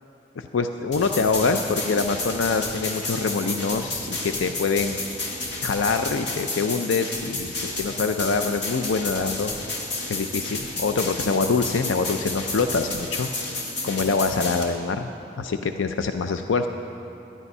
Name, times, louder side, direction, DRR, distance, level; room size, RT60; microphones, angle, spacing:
voice 1, 0.4-5.0 5.6-9.5 10.1-13.3 13.8-15.1 15.4-16.7, left 4 dB, 85° left, 7 dB, 0.5 m, -25 dB
sound 1, 0.9-14.6, left 2 dB, 65° left, 1.9 m, -31 dB
12.5 x 10.5 x 5.4 m, 2.9 s
head